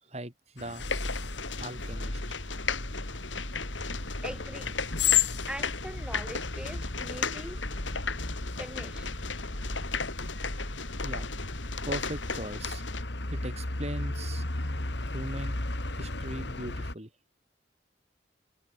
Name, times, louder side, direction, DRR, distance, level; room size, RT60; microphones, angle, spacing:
voice 1, 0.0-0.9 1.6-2.4 11.0-11.3 11.9-12.8 13.3-14.5 15.0-15.5 15.9-17.1, right 1 dB, 35° right, 7.0 m, -39 dB
sound 1, 0.6-16.9, left 5 dB, 65° left, 2.7 m, -35 dB
sound 2, 0.8-13.0, left 3 dB, 85° left, 4.5 m, -35 dB
voice 2, 4.2-4.8 5.5-7.6 8.6-9.1, equal, 5° right, 8.0 m, -42 dB
head